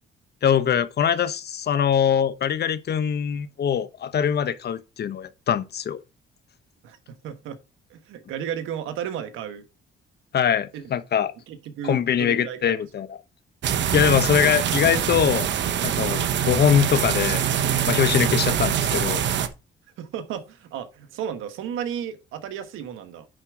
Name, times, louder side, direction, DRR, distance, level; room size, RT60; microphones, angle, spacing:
voice 1, 0.4-6.0 10.3-11.3 11.8-13.2 13.9-15.5 15.8-17.4 17.8-19.2, left 8 dB, 55° left, 1.0 m, -22 dB
voice 2, 7.2-7.6 7.9-9.6 10.7-10.8 11.5-12.7 20.0-23.3, right 9 dB, 90° right, 1.3 m, -33 dB
sound 1, 13.6-19.5, right 9 dB, 65° right, 1.0 m, -24 dB
9.9 x 4.5 x 4.8 m
cardioid pair, 90°, 20 cm